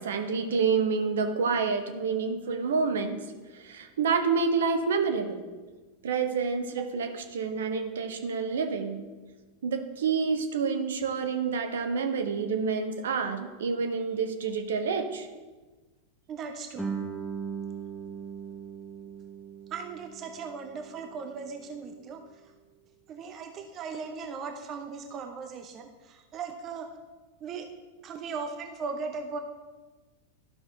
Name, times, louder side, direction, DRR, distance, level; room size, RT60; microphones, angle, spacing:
voice 1, 0.0-3.2 3.5-5.4 6.0-9.0 9.6-15.3, right 5 dB, 60° right, 5 dB, 0.9 m, -28 dB
voice 2, 16.3-16.9 19.7-22.2 23.1-26.9 27.4-27.7 28.0-29.4, right 5 dB, 30° right, 5 dB, 0.6 m, -38 dB
Guitar, 16.8-22.1, right 6 dB, 5° left, 1.0 m, -39 dB
12.5 x 5.6 x 2.8 m, 1.3 s
figure-of-eight pair, 90°, 0 cm